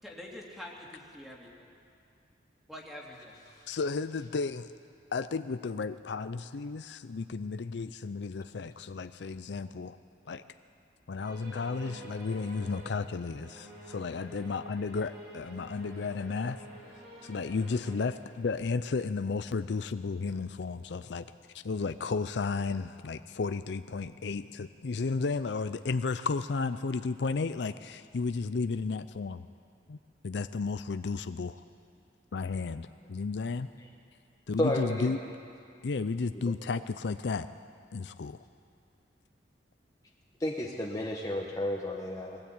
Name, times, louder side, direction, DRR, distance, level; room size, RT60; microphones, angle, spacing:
voice 1, 0.0-1.7 2.7-3.4, left 1 dB, ahead, -3 dB, 2.8 m, -45 dB
voice 2, 3.7-4.7 5.1-10.0 10.3-10.4 11.1-16.7 17.2-21.3 21.6-29.5 29.9-30.0 30.2-31.6 32.3-33.7 34.5-35.2 35.8-37.5 37.9-38.4, left 4 dB, 70° left, 11 dB, 0.5 m, -33 dB
sound 1, 11.2-18.0, equal, 60° right, 6.0 m, -49 dB
voice 3, 34.6-35.1 36.3-36.5 40.4-42.4, left 1 dB, 20° left, -1 dB, 1.3 m, -32 dB
20.5 x 16.5 x 8.7 m, 2.4 s
head